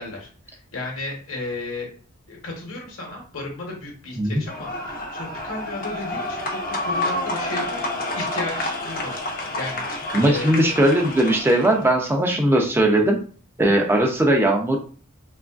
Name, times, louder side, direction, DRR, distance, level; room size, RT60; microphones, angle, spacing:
voice 1, 0.0-1.9 2.3-9.1 9.5-10.7, left 2 dB, 65° left, 0 dB, 1.0 m, -34 dB
sound 1, 4.5-11.8, left 1 dB, 40° left, 0.6 m, -29 dB
voice 2, 10.1-13.2 13.6-14.8, right 1 dB, 10° right, 1 dB, 0.4 m, -19 dB
2.9 x 2.4 x 2.3 m, 0.41 s
head